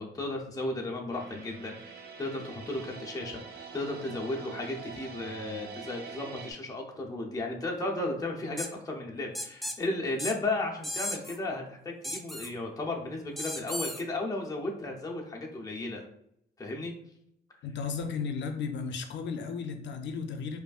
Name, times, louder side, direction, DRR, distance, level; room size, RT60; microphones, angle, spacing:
voice 1, 0.0-16.1 16.6-16.9, left 2 dB, 20° left, -1 dB, 0.7 m, -34 dB
sound 1, 1.1-6.5, right 6 dB, 60° right, 0.6 m, -45 dB
sound 2, 8.6-8.7 9.4-9.8 10.2-10.4 10.8-11.4 12.0-12.5 13.4-14.0, equal, ahead, 0.3 m, -35 dB
voice 2, 17.6-20.6, left 5 dB, 80° left, 6 dB, 0.4 m, -34 dB
4.9 x 2.5 x 2.4 m, 0.73 s
cardioid pair, 120°, 18 cm